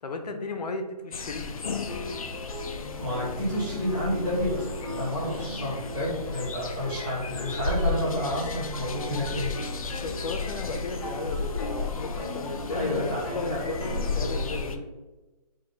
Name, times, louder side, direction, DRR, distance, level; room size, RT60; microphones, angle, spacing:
voice 1, 0.0-1.5 10.0-14.9, left 3 dB, 85° left, 5 dB, 0.8 m, -35 dB
sound 1, 1.1-14.8, left 4 dB, 60° left, 0.4 m, -34 dB
sound 2, 1.7-14.5, left 1 dB, 40° left, 1.1 m, -39 dB
voice 2, 3.0-9.5 12.7-13.2 13.5-13.6, equal, ahead, -28 dB, 0.4 m, -30 dB
3.8 x 2.3 x 4.2 m, 1.2 s
hypercardioid pair, 175°, 20 cm